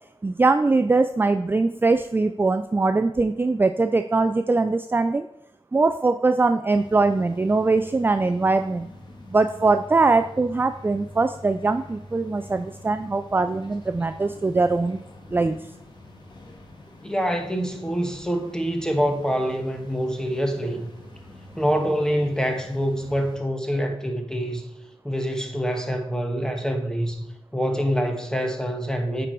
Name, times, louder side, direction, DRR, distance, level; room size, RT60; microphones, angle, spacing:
voice 1, 0.2-5.3 5.7-8.9 9.3-15.0 15.3-15.6, right 3 dB, 20° right, 9 dB, 0.3 m, -21 dB
sound 1, 6.7-23.4, left 1 dB, 45° left, 1.5 m, -45 dB
voice 2, 17.0-20.9 21.6-24.7 25.0-27.2 27.5-29.3, equal, 5° left, 4 dB, 1.3 m, -25 dB
8.9 x 4.6 x 4.5 m, 0.83 s
cardioid pair, 70°, 10 cm